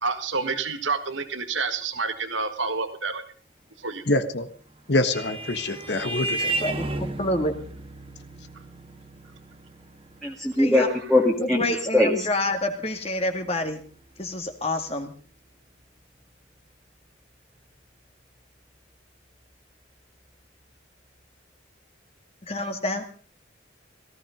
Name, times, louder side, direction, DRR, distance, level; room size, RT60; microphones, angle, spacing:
voice 1, 0.0-3.2 3.8-4.0, right 4 dB, 80° right, 8 dB, 1.8 m, -28 dB
voice 2, 4.1-4.5 4.9-6.5, left 1 dB, 60° left, 9 dB, 1.5 m, -25 dB
Vehicle horn car horn honking, 4.5-13.5, right 2 dB, 30° right, 1.9 m, -35 dB
voice 3, 6.6-7.5 10.6-10.9 11.4-13.8 14.2-15.1 22.5-23.0, left 1 dB, 30° left, 5 dB, 2.1 m, -28 dB
voice 4, 10.2-11.6 11.9-12.3, left 1 dB, ahead, -2 dB, 2.0 m, -21 dB
17.5 x 15.0 x 5.3 m, 0.41 s
head